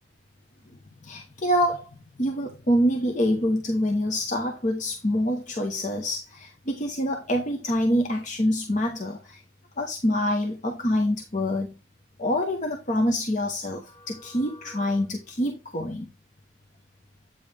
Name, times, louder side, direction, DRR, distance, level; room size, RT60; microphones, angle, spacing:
voice 1, 1.0-1.9 2.2-9.4 9.8-11.7 12.2-16.1, equal, 40° left, 0.9 m, -26 dB
8.6 x 5.2 x 3.3 m
head